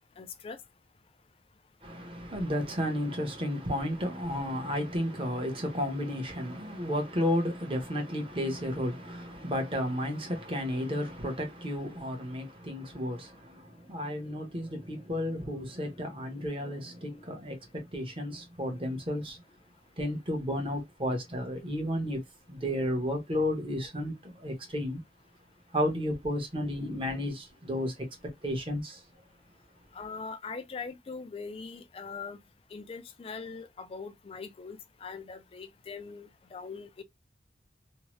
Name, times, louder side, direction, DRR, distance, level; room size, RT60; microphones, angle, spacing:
voice 1, 0.2-0.6 29.9-32.4 32.7-37.0, left 5 dB, 30° left, 0.3 m, -41 dB
voice 2, 1.8-19.4 20.0-22.2 22.5-25.0 25.7-28.1 28.4-29.0, equal, 30° right, 0.8 m, -32 dB
2.7 x 2.0 x 3.0 m
head